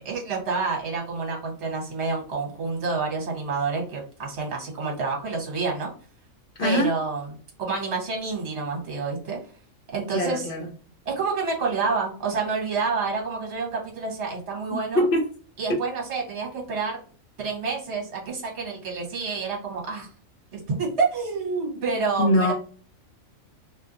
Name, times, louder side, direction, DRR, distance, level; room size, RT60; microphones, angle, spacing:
voice 1, 0.0-5.9 6.6-7.3 7.6-9.4 9.9-10.5 11.0-15.0 15.6-17.0 17.4-20.1 20.5-22.5, right 4 dB, 55° right, 1.4 m, -28 dB
voice 2, 6.6-6.9 10.1-10.7 14.7-15.2 22.2-22.5, left 1 dB, 45° left, 0.9 m, -22 dB
2.7 x 2.1 x 3.9 m
omnidirectional pair, 1.4 m